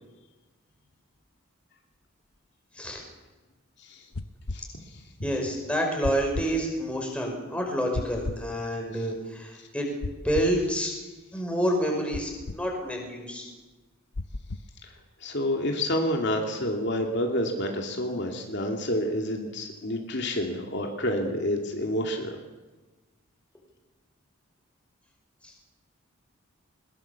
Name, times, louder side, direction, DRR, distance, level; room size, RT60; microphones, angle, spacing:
sound 1, 4.1-4.6 6.0-6.5 7.9-8.4 10.0-10.6 12.1-12.6 14.1-14.7, left 2 dB, 75° left, 0.8 m, -34 dB
voice 1, 4.5-5.0 14.8-14.9 15.2-22.4, left 1 dB, 55° left, 1 dB, 2.7 m, -29 dB
voice 2, 5.2-9.9 10.2-10.9 11.3-13.5 25.4-25.5, equal, 5° left, 1 dB, 5.3 m, -28 dB
22.0 x 22.0 x 7.2 m, 1.2 s
head